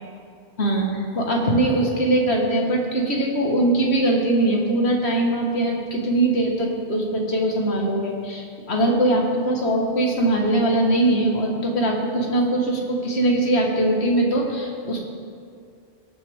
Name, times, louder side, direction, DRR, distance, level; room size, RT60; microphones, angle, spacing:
voice 1, 1.2-15.0, right 1 dB, 75° left, 0 dB, 1.8 m, -21 dB
19.0 x 7.1 x 3.5 m, 2.3 s
omnidirectional pair, 1.1 m